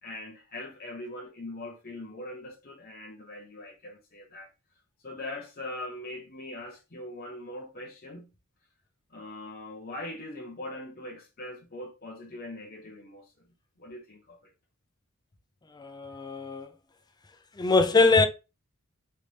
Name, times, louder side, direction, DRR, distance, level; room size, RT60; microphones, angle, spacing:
voice 1, 0.0-4.5 5.0-8.3 9.1-13.4 13.8-14.5, left 1 dB, 45° left, 0.9 m, -41 dB
voice 2, 15.8-16.7 17.6-18.3, left 3 dB, 20° left, 0.4 m, -22 dB
4.0 x 3.3 x 3.3 m
head